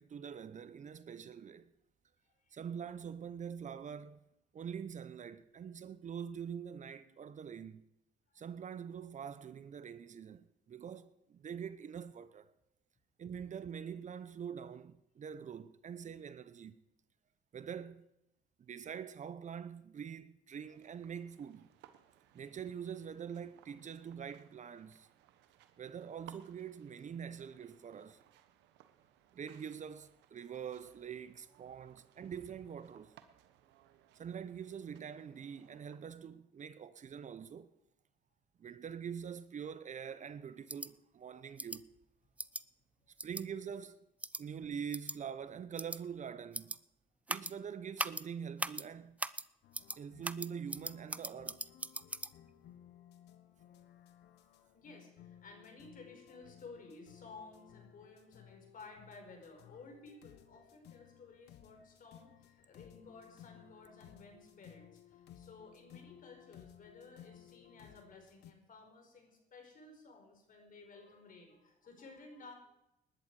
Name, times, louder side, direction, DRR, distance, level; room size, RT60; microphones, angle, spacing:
voice 1, 0.0-1.7 2.5-4.2 4.5-7.8 8.3-12.5 13.2-16.8 17.5-18.1 18.6-21.7 22.3-25.1 25.8-28.2 29.3-33.1 34.1-37.7 38.6-41.9 43.2-44.0 44.4-46.7 47.3-49.2 50.0-51.6, right 7 dB, 45° right, 0.8 m, -45 dB
sound 1, 20.6-36.0, right 11 dB, 80° right, 1.2 m, -64 dB
sound 2, 40.7-40.9 41.6-41.8 42.4-42.6 43.2-43.4 44.2-44.4 44.9-45.2 45.8-46.0 46.5-46.8 47.3-47.5 48.0-48.2 48.6-48.8 49.2-49.4 49.7-50.0 50.2-52.3, right 2 dB, 10° right, 0.5 m, -39 dB
sound 3, 49.6-68.5, left 10 dB, 75° left, 1.2 m, -59 dB
voice 2, 54.7-72.5, left 3 dB, 50° left, 4.9 m, -55 dB
19.5 x 10.5 x 4.9 m
supercardioid pair, 80°, 18 cm